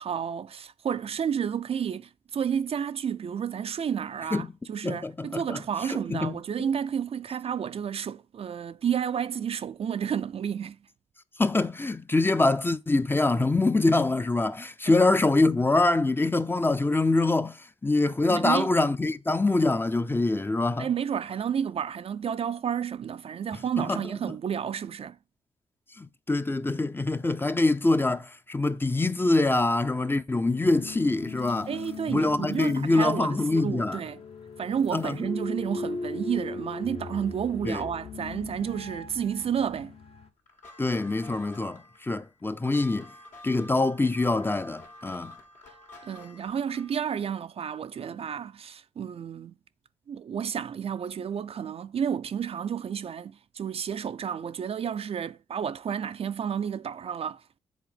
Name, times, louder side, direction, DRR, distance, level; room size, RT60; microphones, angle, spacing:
voice 1, 0.0-10.8 18.3-18.7 20.8-25.2 31.7-34.2 34.6-40.0 46.0-49.5 50.1-57.6, right 8 dB, 50° right, 0.4 m, -31 dB
voice 2, 4.8-5.6 5.9-6.7 11.4-20.9 23.8-24.0 26.0-31.7 32.1-34.0 34.9-35.2 37.6-37.8 40.8-43.1 43.4-45.3, left 2 dB, 15° left, 0.5 m, -25 dB
sound 1, 30.6-40.3, left 4 dB, 50° left, 0.9 m, -39 dB
sound 2, 40.5-47.0, left 1 dB, 75° left, 2.4 m, -49 dB
7.2 x 3.8 x 5.8 m
cardioid pair, 60°, 13 cm